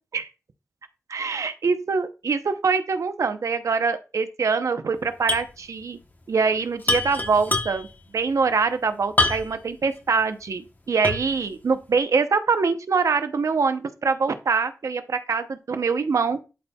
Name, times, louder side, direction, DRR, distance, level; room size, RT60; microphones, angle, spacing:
voice 1, 1.1-6.0 6.3-7.9 8.1-16.4, right 5 dB, 80° right, 10 dB, 0.6 m, -24 dB
sound 1, 5.3-5.5 5.8-5.9 6.8-8.0 9.2-9.7 10.2-10.3 11.0-11.4, left 2 dB, 35° left, 0.9 m, -24 dB
11.5 x 4.1 x 2.2 m, 0.30 s
wide cardioid pair, 95°, 5 cm